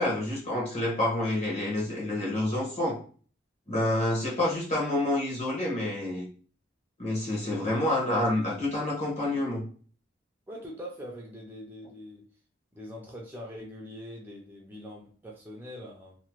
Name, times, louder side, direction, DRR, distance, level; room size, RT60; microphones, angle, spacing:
voice 1, 0.0-3.0 3.7-6.3 7.0-9.6, left 1 dB, 35° left, -4 dB, 1.1 m, -28 dB
voice 2, 10.5-12.3 12.7-16.2, equal, 10° right, -1 dB, 0.5 m, -43 dB
2.9 x 2.1 x 3.0 m, 0.42 s
head